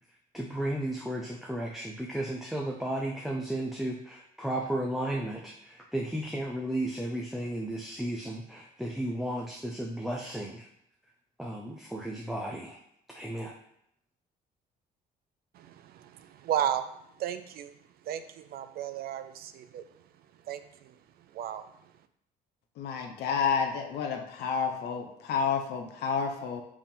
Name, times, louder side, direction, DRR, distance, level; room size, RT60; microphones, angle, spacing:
voice 1, 0.3-10.7 11.4-12.8 13.1-13.5, right 1 dB, ahead, 0 dB, 0.6 m, -34 dB
voice 2, 15.5-16.9 17.2-17.7 18.1-19.9 20.5-20.9 21.3-21.6, right 10 dB, 65° right, 11 dB, 0.5 m, -34 dB
voice 3, 22.8-26.6, left 6 dB, 75° left, 3 dB, 0.8 m, -30 dB
5.0 x 3.6 x 5.3 m, 0.74 s
cardioid pair, 110°, 17 cm